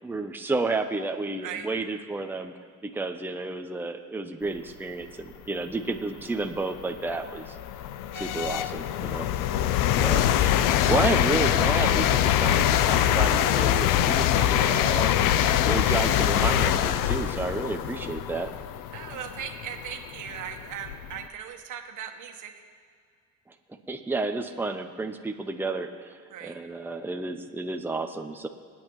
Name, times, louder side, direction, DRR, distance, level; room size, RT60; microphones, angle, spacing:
voice 1, 0.0-2.5 2.8-7.6 8.1-9.3 10.0-15.3 15.6-18.5 23.5-23.6 23.9-28.5, right 3 dB, 5° right, 5 dB, 0.7 m, -31 dB
sound 1, 5.7-5.8 6.4-21.2, left 11 dB, 85° left, 0.6 m, -24 dB
voice 2, 18.9-22.5 26.3-26.6, right 8 dB, 70° right, 4 dB, 1.4 m, -38 dB
26.0 x 8.9 x 3.1 m, 2.2 s
cardioid pair, 90°, 32 cm